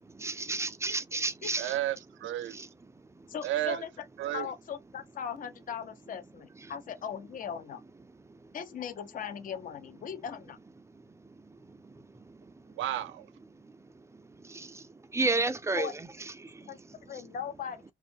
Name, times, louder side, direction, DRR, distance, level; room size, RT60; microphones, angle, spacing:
voice 1, 0.2-1.7 2.5-2.7 14.5-14.8 15.1-15.9 16.4-16.6, right 3 dB, 15° right, 0.4 m, -31 dB
voice 2, 1.6-2.6 3.4-3.8 4.2-4.5 12.8-13.3, right 13 dB, 75° right, 0.5 m, -32 dB
voice 3, 3.3-3.9 4.3-7.8 8.5-10.6 15.8-16.0 16.7-17.8, left 8 dB, 45° left, 0.5 m, -39 dB
2.5 x 2.2 x 2.6 m
cardioid pair, 90°, 20 cm